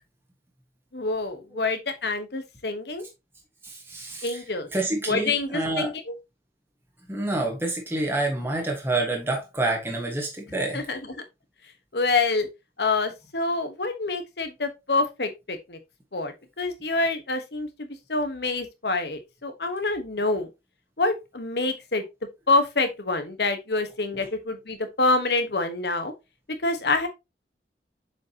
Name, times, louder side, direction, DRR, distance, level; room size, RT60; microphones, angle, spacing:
voice 1, 0.9-3.0 4.2-4.7 5.1-6.1 10.7-11.2 11.9-12.5 12.8-15.8 16.1-20.5 21.0-22.0 22.5-26.1 26.6-27.1, left 3 dB, 65° left, 1.3 m, -26 dB
voice 2, 3.6-4.4 4.7-5.9 7.1-10.8 24.1-24.2, right 2 dB, 15° right, 1.5 m, -28 dB
7.1 x 5.1 x 2.9 m
head